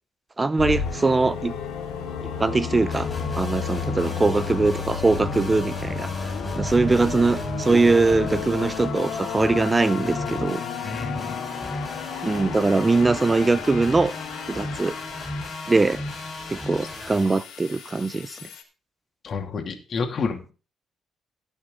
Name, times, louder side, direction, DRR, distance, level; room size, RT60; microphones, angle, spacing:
voice 1, 0.4-1.5 2.4-3.1 3.3-6.1 6.5-10.6 12.2-14.1 14.5-15.0 15.7-16.0 16.5-18.4, right 3 dB, 25° right, 0.6 m, -21 dB
sound 1, 0.6-18.6, left 6 dB, 85° left, 2.9 m, -32 dB
sound 2, 2.9-17.2, left 1 dB, 15° left, 5.0 m, -36 dB
voice 2, 10.8-11.4 19.2-20.5, left 5 dB, 50° left, 2.6 m, -30 dB
18.0 x 6.4 x 3.9 m
cardioid pair, 90°, 0 cm